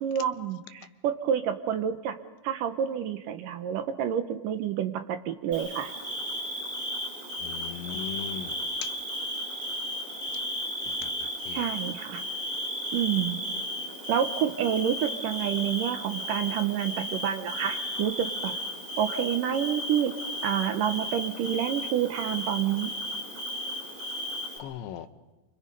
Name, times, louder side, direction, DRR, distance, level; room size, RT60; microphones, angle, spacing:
voice 1, 0.0-2.1 2.4-5.9 11.5-12.2 12.9-13.4 14.1-18.5 19.0-20.1 20.4-22.9, right 9 dB, 70° right, 8 dB, 2.1 m, -28 dB
Bird / Cricket, 5.5-24.6, equal, 10° right, 3.1 m, -34 dB
voice 2, 7.4-8.6 8.8-8.9 10.9-11.1 11.4-11.6 24.6-25.1, left 9 dB, 85° left, 9 dB, 3.2 m, -38 dB
29.5 x 26.0 x 5.4 m, 1.2 s
omnidirectional pair, 5.0 m